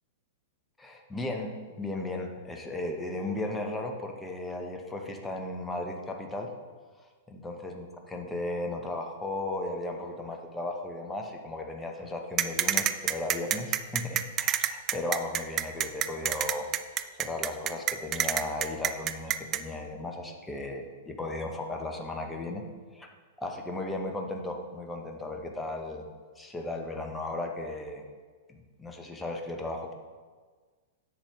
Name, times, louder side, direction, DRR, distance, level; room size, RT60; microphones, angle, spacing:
voice 1, 0.8-6.5 7.3-16.7 17.2-22.6 22.9-23.1 23.4-26.0 26.4-28.0 28.5-29.9, left 2 dB, 10° left, 2 dB, 1.1 m, -35 dB
sound 1, 12.4-19.6, right 11 dB, 30° right, 0.4 m, -27 dB
10.0 x 7.6 x 3.5 m, 1.5 s
figure-of-eight pair, 100°, 0 cm